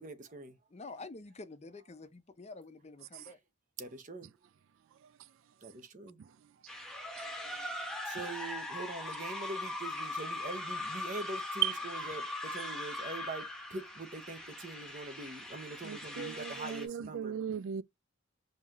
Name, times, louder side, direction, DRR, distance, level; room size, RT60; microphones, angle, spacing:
voice 1, 0.0-0.6 3.2-3.3 3.8-4.3 5.6-6.2 7.8-17.4, right 2 dB, 40° right, 0.8 m, -43 dB
voice 2, 0.7-3.4, left 3 dB, 30° left, 0.5 m, -48 dB
voice 3, 6.2-6.5 11.6-11.7 15.8-17.8, right 10 dB, 70° right, 0.3 m, -37 dB
sound 1, 6.7-16.9, left 2 dB, 5° left, 1.0 m, -40 dB
5.5 x 2.8 x 2.4 m
head